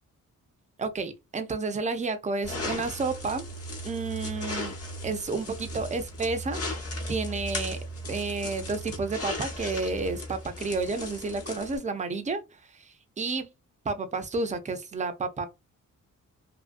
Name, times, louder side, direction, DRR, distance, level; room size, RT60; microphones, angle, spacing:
voice 1, 0.8-3.5 3.8-4.7 5.0-6.6 7.1-7.8 8.1-12.4 12.7-13.5 13.8-15.5, right 3 dB, 25° right, 0.4 m, -31 dB
sound 1, 2.4-11.8, left 1 dB, 45° left, 1.0 m, -36 dB
2.7 x 2.6 x 2.4 m
wide cardioid pair, 155°, 32 cm